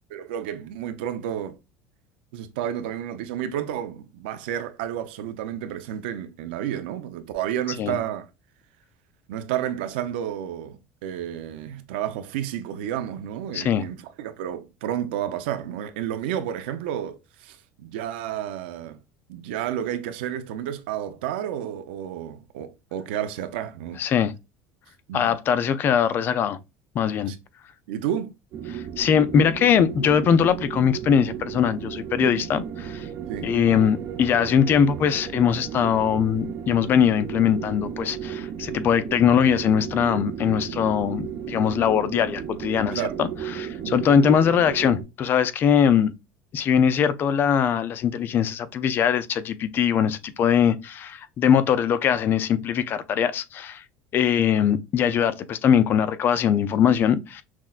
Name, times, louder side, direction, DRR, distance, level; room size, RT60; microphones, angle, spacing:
voice 1, 0.1-1.6 2.3-8.3 9.3-19.0 19.3-24.0 25.1-25.4 27.3-27.4 27.9-28.4 32.3-32.4 33.3-33.5 42.9-43.2 43.8-44.0, right 10 dB, 90° right, 0.6 m, -31 dB
voice 2, 13.5-13.8 24.0-24.3 25.1-26.6 26.9-27.3 28.7-33.1 33.4-46.1 46.5-53.8 54.1-57.4, left 8 dB, 40° left, 0.4 m, -21 dB
sound 1, 28.5-45.0, right 9 dB, 45° right, 0.5 m, -34 dB
5.9 x 2.2 x 2.4 m
supercardioid pair, 120°, 5 cm